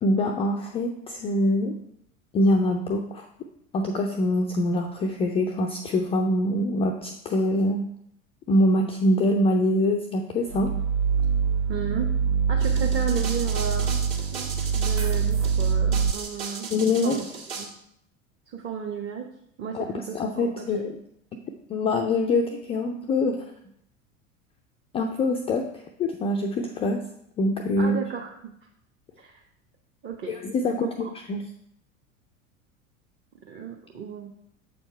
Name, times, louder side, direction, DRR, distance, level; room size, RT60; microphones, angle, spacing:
voice 1, 0.0-1.7 2.3-3.3 3.7-7.8 8.5-10.7 16.7-17.2 19.7-21.0 21.7-23.4 24.9-25.6 26.0-27.0 27.4-28.0 30.3-31.4, left 1 dB, 15° left, 3 dB, 0.3 m, -24 dB
sound 1, 10.5-16.1, right 6 dB, 70° right, 0.6 m, -24 dB
voice 2, 11.7-12.1 12.5-14.0 14.3-14.5 14.7-16.7 17.0-17.2 17.6-17.7 18.5-19.3 19.6-19.8 20.1-20.9 27.8-28.3 29.2-29.4 30.0-30.3 30.8-31.1 33.5-34.3, right 7 dB, 25° right, 0 dB, 0.9 m, -33 dB
sound 2, 12.6-17.7, right 5 dB, 45° right, 1.7 m, -37 dB
7.1 x 4.4 x 4.4 m, 0.75 s
figure-of-eight pair, 80°, 41 cm